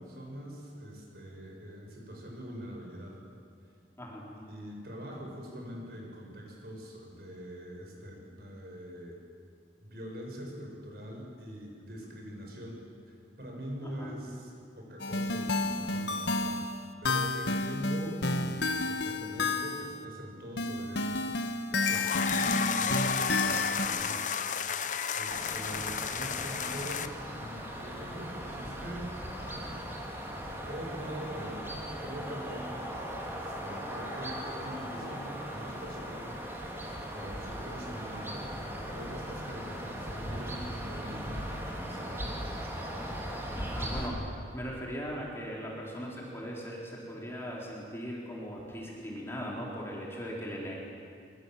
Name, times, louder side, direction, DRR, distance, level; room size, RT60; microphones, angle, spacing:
voice 1, 0.0-3.2 4.5-9.2 9.8-12.8 13.4-16.5 17.0-21.3 21.7-24.3 25.1-30.1 30.7-31.6 32.0-32.9 33.3-36.3 36.6-38.4 38.9-42.3, equal, 60° right, 0 dB, 6.2 m, -43 dB
voice 2, 13.8-14.2 17.7-17.8 43.6-44.2 44.5-50.8, equal, 15° left, -3 dB, 4.5 m, -39 dB
sound 1, 15.0-20.0 20.6-23.9, left 2 dB, 80° left, 1.5 m, -31 dB
sound 2, 21.8-27.1, left 6 dB, 45° left, 1.0 m, -32 dB
sound 3, 25.3-44.1, equal, 15° right, 3.6 m, -39 dB
25.0 x 23.5 x 7.6 m, 2.5 s
head